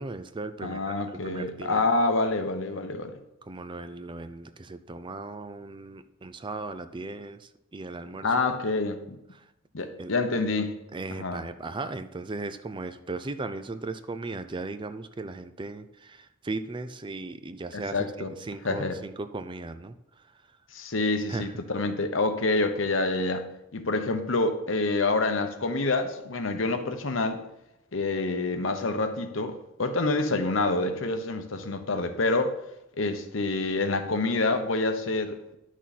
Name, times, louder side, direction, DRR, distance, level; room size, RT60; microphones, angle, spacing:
voice 1, 0.0-1.8 3.4-8.3 9.3-9.5 10.0-10.1 10.9-20.4 21.3-21.6, right 3 dB, 25° right, 0.4 m, -37 dB
voice 2, 0.6-3.1 8.2-9.0 9.7-10.7 11.2-11.4 17.7-18.3 18.6-19.0 20.7-23.5 23.7-27.4 27.9-32.5 33.0-35.6, left 3 dB, 70° left, 1.0 m, -27 dB
11.0 x 6.2 x 4.2 m
head